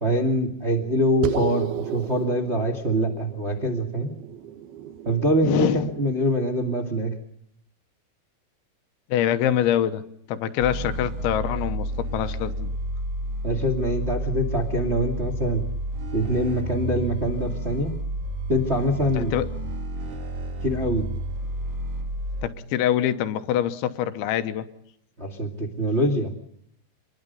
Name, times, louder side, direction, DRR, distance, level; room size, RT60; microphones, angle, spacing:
voice 1, 0.0-4.1 5.0-7.1 13.4-15.6 16.1-17.9 18.5-19.3 20.6-21.1 25.2-26.3, equal, 25° right, 1 dB, 1.4 m, -24 dB
sound 1, 1.2-6.0, right 10 dB, 70° right, 2.7 m, -33 dB
voice 2, 5.4-5.9 9.1-10.0 10.3-12.7 19.1-19.5 22.4-24.7, left 11 dB, 80° left, 10 dB, 3.3 m, -25 dB
sound 2, 10.6-22.5, right 1 dB, 45° right, 2.0 m, -31 dB
26.5 x 21.5 x 5.4 m, 0.74 s
omnidirectional pair, 5.3 m